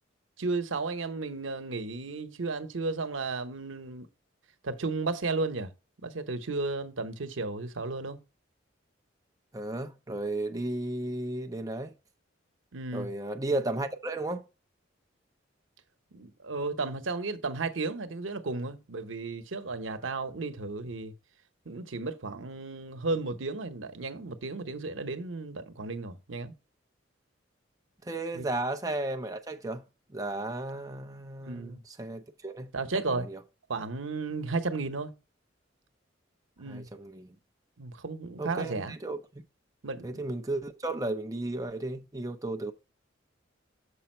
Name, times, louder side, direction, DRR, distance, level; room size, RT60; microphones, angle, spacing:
voice 1, 0.4-4.1 4.6-5.7 6.0-8.2 12.7-13.1 16.1-21.1 21.7-26.5 28.3-28.4 31.4-31.8 32.7-33.3 33.7-35.1 36.6-36.9 37.8-38.9 39.8-40.3, right 3 dB, 85° right, 0.9 m, -34 dB
voice 2, 9.5-11.9 12.9-14.4 28.0-29.8 30.1-33.4 36.7-37.4 38.4-39.2 40.0-42.7, right 2 dB, 20° right, 0.6 m, -34 dB
6.9 x 5.3 x 4.3 m
head